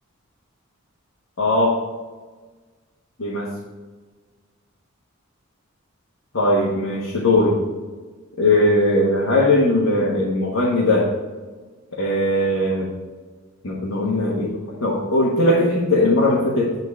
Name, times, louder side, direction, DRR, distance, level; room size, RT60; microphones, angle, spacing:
voice 1, 1.4-1.8 3.2-3.5 6.3-7.6 8.4-11.1 11.9-12.9 13.6-16.8, left 1 dB, 80° left, -5 dB, 1.5 m, -19 dB
9.3 x 4.0 x 4.8 m, 1.4 s
head